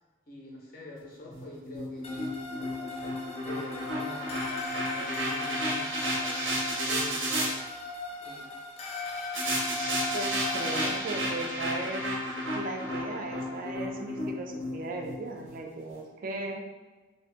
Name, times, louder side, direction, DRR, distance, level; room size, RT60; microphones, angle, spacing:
voice 1, 0.3-2.2 3.4-4.5 4.9-6.4 6.8-7.7 8.2-8.6, left 2 dB, 50° left, -3 dB, 0.8 m, -45 dB
sound 1, 1.3-7.5 9.3-15.6, equal, 90° right, 0.8 m, -32 dB
sound 2, 2.0-11.0, left 3 dB, 30° left, 0.4 m, -38 dB
voice 2, 10.1-12.1 12.5-16.6, right 2 dB, 45° right, 2 dB, 0.4 m, -37 dB
2.8 x 2.8 x 3.2 m, 1.3 s
head